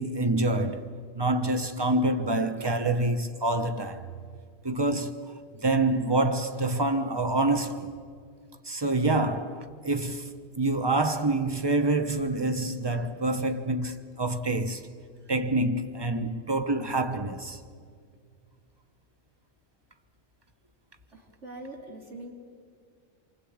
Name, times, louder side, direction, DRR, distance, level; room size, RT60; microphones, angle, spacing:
voice 1, 0.0-4.1 4.6-7.9 8.6-14.9 15.3-17.6, right 2 dB, 20° right, 1.1 m, -27 dB
voice 2, 21.1-22.3, right 1 dB, 65° right, 3.6 m, -43 dB
28.0 x 24.0 x 8.7 m
omnidirectional pair, 1.3 m